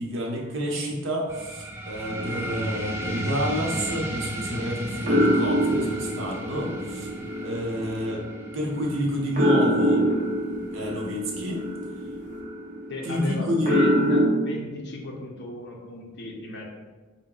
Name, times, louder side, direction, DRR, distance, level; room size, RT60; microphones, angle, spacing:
voice 1, 0.0-7.1 7.4-8.2 8.5-10.0 10.7-11.6 13.0-13.8, equal, 65° right, -1 dB, 0.8 m, -29 dB
sound 1, 1.3-12.3, right 1 dB, 10° right, 0.3 m, -35 dB
sound 2, 2.1-4.7 5.1-14.3, equal, 35° right, 0.8 m, -26 dB
voice 2, 12.9-16.7, left 2 dB, 55° left, 0 dB, 0.7 m, -35 dB
4.5 x 2.2 x 3.7 m, 1.3 s
head